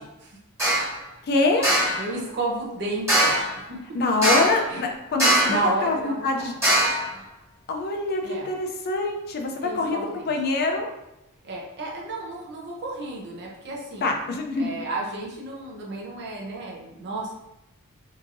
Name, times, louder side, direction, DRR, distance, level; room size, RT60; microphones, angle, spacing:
sound 1, 0.6-0.9 1.6-2.0 3.1-3.5 4.2-4.7 5.2-5.7 6.6-7.1, right 1 dB, 10° right, 1.5 m, -21 dB
voice 1, 1.3-1.7 3.9-5.4 5.6-6.5 7.7-10.9 14.0-14.7, left 3 dB, 45° left, 3 dB, 0.4 m, -25 dB
voice 2, 2.0-3.3 3.7-3.8 4.7-4.8 5.5-6.5 8.2-8.5 9.6-10.1 11.4-14.1 14.6-17.3, right 2 dB, 50° right, -2 dB, 0.7 m, -32 dB
2.9 x 2.6 x 2.5 m, 0.91 s
head